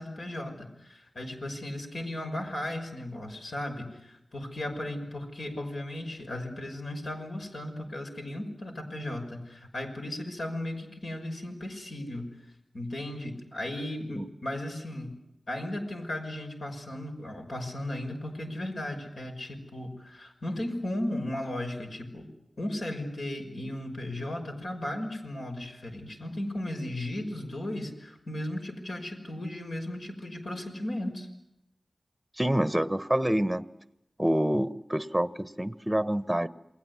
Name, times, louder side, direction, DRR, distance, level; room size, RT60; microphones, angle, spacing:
voice 1, 0.0-12.3 12.7-15.1 15.5-22.2 22.6-31.3, left 1 dB, 65° left, 4 dB, 5.9 m, -36 dB
voice 2, 32.4-33.7 34.2-36.5, right 1 dB, 10° right, 14 dB, 1.1 m, -27 dB
28.5 x 21.5 x 9.7 m, 0.85 s
wide cardioid pair, 75°, 0 cm